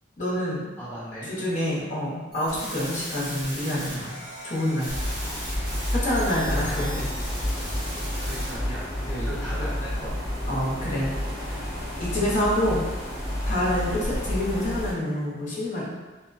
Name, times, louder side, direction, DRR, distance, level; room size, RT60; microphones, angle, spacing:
voice 1, 0.2-0.7 1.2-4.1 4.4-4.9 5.9-7.1 10.5-11.1 11.4-11.5 12.0-12.8 13.5-15.9, left 1 dB, 40° left, -7 dB, 0.7 m, -27 dB
voice 2, 0.8-1.3 6.4-7.0 8.2-10.3, equal, 10° left, -11 dB, 0.9 m, -36 dB
sound 1, 2.3-8.6, equal, 45° right, 1.5 m, -37 dB
sound 2, 4.9-14.9, left 1 dB, 65° right, 1.0 m, -30 dB
2.6 x 2.1 x 2.4 m, 1.2 s
head